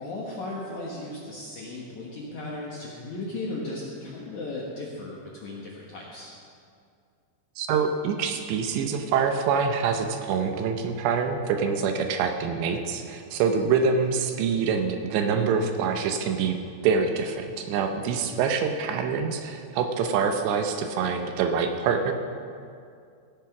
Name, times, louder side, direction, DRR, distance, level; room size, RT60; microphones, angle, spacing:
voice 1, 0.0-6.3 18.1-18.4, left 2 dB, 65° left, -4 dB, 2.0 m, -36 dB
voice 2, 7.6-16.6 16.8-22.1, right 6 dB, 80° right, 6 dB, 2.9 m, -25 dB
16.5 x 8.9 x 5.9 m, 2.3 s
omnidirectional pair, 5.3 m